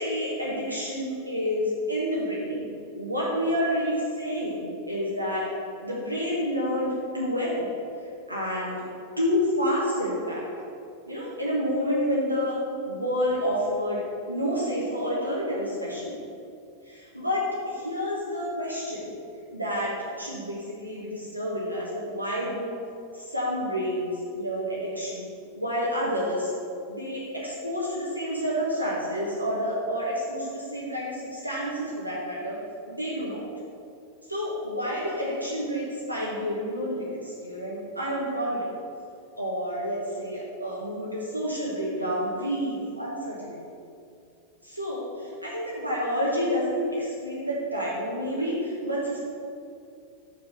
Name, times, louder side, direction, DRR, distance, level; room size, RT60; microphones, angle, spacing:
voice 1, 0.0-2.7 2.9-5.4 5.8-7.7 8.3-8.8 9.2-10.4 11.1-12.6 12.8-14.0 14.3-16.2 16.8-19.1 19.5-22.7 23.1-25.3 25.5-26.5 26.9-32.6 32.9-33.4 34.3-38.6 39.4-43.6 44.6-49.2, equal, 85° right, -6 dB, 1.2 m, -29 dB
5.4 x 5.4 x 5.9 m, 2.5 s
figure-of-eight pair, 90°, 0 cm